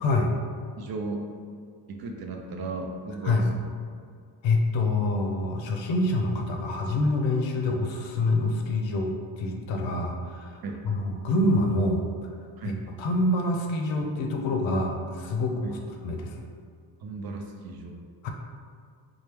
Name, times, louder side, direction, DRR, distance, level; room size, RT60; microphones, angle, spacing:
voice 1, 0.8-1.2 1.9-3.7 10.6-10.8 12.6-12.8 15.6-15.8 17.0-18.0, right 3 dB, 55° right, 2 dB, 0.5 m, -35 dB
voice 2, 4.4-10.6 10.8-12.0 12.6-15.8 16.0-16.5 18.2-18.3, left 2 dB, 80° left, 2 dB, 0.6 m, -26 dB
4.4 x 2.1 x 3.3 m, 2.1 s
wide cardioid pair, 175°, 45 cm